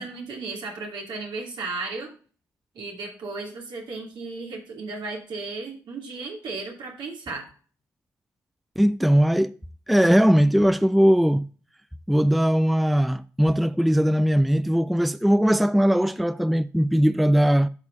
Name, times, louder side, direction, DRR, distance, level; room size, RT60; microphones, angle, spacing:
voice 1, 0.0-2.1 2.7-7.5, right 3 dB, 70° right, 2.6 m, -35 dB
voice 2, 8.8-9.5 9.9-11.5 12.1-17.7, equal, ahead, 0.4 m, -20 dB
12.0 x 5.3 x 2.5 m
hypercardioid pair, 45°, 8 cm